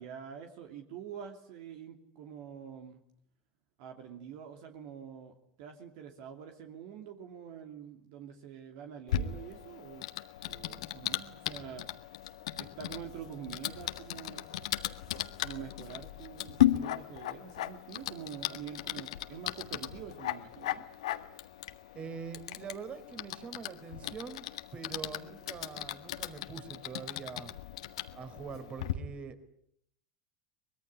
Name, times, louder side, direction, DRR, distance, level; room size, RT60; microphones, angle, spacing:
voice 1, 0.0-3.0 3.8-10.1 10.4-11.9 12.6-14.6 15.4-20.9, right 8 dB, 60° right, 5 dB, 2.8 m, -46 dB
Typing, 9.1-28.9, left 12 dB, 75° left, 1.6 m, -36 dB
voice 2, 21.9-24.4 24.7-27.5 28.1-29.5, right 5 dB, 35° right, 11 dB, 3.8 m, -44 dB
24.0 x 21.0 x 10.0 m, 0.70 s
hypercardioid pair, 85°, 3 cm